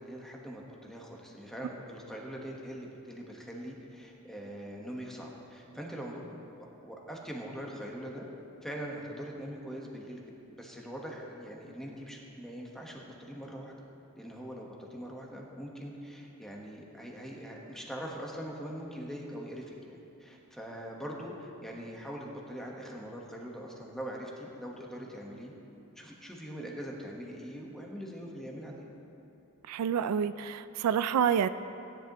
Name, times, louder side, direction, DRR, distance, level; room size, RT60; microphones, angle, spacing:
voice 1, 0.0-6.4 6.8-8.3 8.6-10.2 10.6-13.7 14.2-25.5 26.0-28.9, equal, ahead, -2 dB, 1.2 m, -42 dB
voice 2, 29.7-31.5, right 8 dB, 80° right, 14 dB, 0.3 m, -28 dB
16.5 x 10.0 x 3.0 m, 2.9 s
head